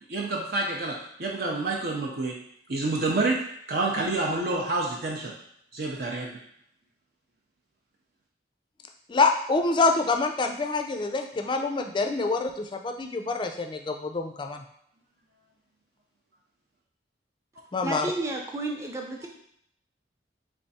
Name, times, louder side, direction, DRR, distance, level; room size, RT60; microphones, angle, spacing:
voice 1, 0.1-2.4 2.7-5.3 5.7-6.4, right 2 dB, 55° right, -2 dB, 0.6 m, -28 dB
voice 2, 9.1-14.6 17.7-18.1, left 3 dB, 25° left, 5 dB, 0.4 m, -26 dB
voice 3, 17.8-19.3, right 2 dB, 15° right, 0 dB, 0.6 m, -31 dB
3.4 x 3.4 x 4.1 m, 0.70 s
head